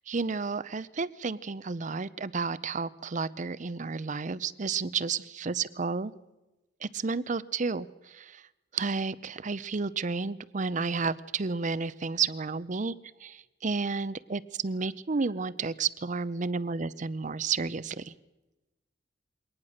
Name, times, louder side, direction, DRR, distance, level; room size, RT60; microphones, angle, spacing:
voice 1, 0.1-6.1 6.8-8.4 8.7-12.9 13.2-18.1, right 4 dB, 40° right, 17 dB, 0.6 m, -31 dB
23.0 x 18.5 x 6.5 m, 1.1 s
head